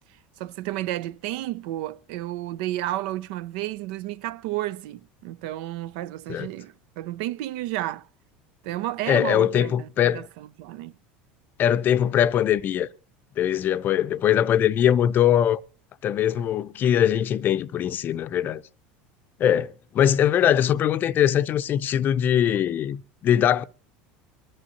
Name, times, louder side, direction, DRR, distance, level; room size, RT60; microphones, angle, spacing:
voice 1, 0.4-8.1 8.6-10.9, right 15 dB, 75° right, 0.6 m, -32 dB
voice 2, 9.1-10.3 11.6-12.9 13.4-15.6 16.0-18.6 19.4-23.6, left 10 dB, 40° left, 0.5 m, -21 dB
24.0 x 11.0 x 2.7 m
supercardioid pair, 120°, 5 cm